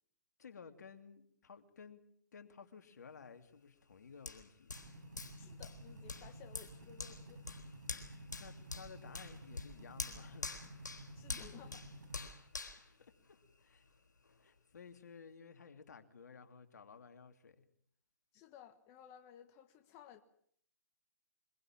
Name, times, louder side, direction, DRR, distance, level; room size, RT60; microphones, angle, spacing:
voice 1, 0.4-2.0 2.3-4.7 8.4-10.5 13.6-13.9 14.4-17.6, left 6 dB, 70° left, 2.8 m, -55 dB
Hands, 4.3-13.8 14.2-14.4, left 3 dB, 85° left, 3.9 m, -47 dB
sound 1, 4.7-12.3, right 1 dB, 75° right, 7.3 m, -53 dB
voice 2, 5.4-7.4 11.1-11.8 18.3-20.2, left 9 dB, 30° left, 1.5 m, -57 dB
24.0 x 22.5 x 7.4 m
figure-of-eight pair, 130°, 10 cm